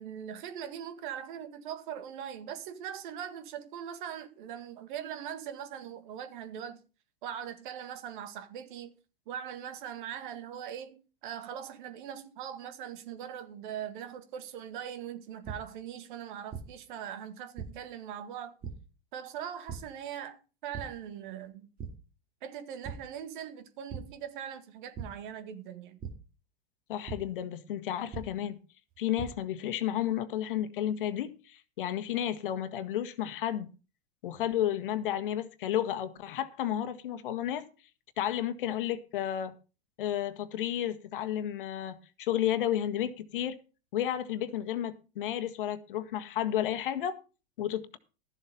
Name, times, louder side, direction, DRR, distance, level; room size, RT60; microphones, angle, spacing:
voice 1, 0.0-6.8 7.2-8.9 9.3-18.5 19.1-21.7 22.4-26.0, right 9 dB, 55° right, 1.9 m, -41 dB
sound 1, 15.4-15.5 16.5-16.6 17.6-17.7 18.6-18.7 19.7-19.8 20.7-20.8 21.3-21.5 21.8-21.9 22.8-22.9 23.9-24.0 25.0-25.1 26.0-26.1 27.1-27.2 28.1-28.2 28.9-29.3, right 7 dB, 30° right, 2.4 m, -38 dB
voice 2, 26.9-28.6 29.0-33.7 34.2-37.7 38.2-39.5 40.0-43.6 43.9-47.2 47.6-48.0, left 11 dB, 60° left, 1.5 m, -32 dB
13.5 x 7.5 x 5.3 m
figure-of-eight pair, 95°, 29 cm